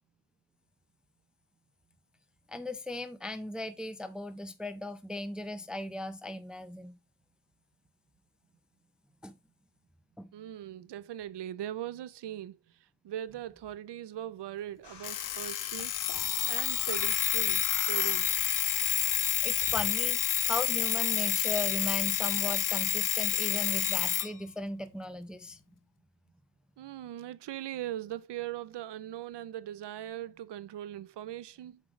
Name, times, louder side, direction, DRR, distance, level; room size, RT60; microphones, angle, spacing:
voice 1, 2.5-6.9 9.2-9.3 10.2-10.3 19.4-25.6, left 1 dB, ahead, 0.5 m, -37 dB
voice 2, 10.3-12.6 13.0-15.9 16.5-18.3 26.8-31.8, right 12 dB, 75° right, 0.6 m, -40 dB
sound 1, 14.8-19.9, left 4 dB, 70° left, 1.7 m, -52 dB
Alarm, 15.0-24.3, left 11 dB, 50° left, 0.4 m, -29 dB
7.4 x 3.2 x 4.9 m
wide cardioid pair, 110°, 43 cm